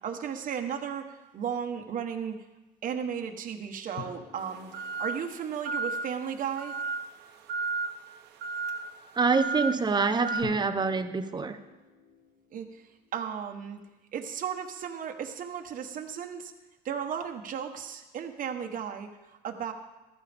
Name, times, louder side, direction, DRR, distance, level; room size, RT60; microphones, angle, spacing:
voice 1, 0.0-2.4 2.8-4.7 5.0-6.7 12.5-12.8 13.1-13.8 14.1-16.5 16.8-19.7, right 8 dB, 50° right, 5 dB, 1.3 m, -35 dB
sound 1, 4.0-6.8 10.4-13.8, left 7 dB, 65° left, 1.5 m, -48 dB
sound 2, 4.4-10.4, right 4 dB, 80° right, 1.2 m, -35 dB
voice 2, 9.1-11.6, right 4 dB, 25° right, 10 dB, 0.9 m, -26 dB
15.0 x 13.0 x 3.6 m, 1.1 s
cardioid pair, 110°, 17 cm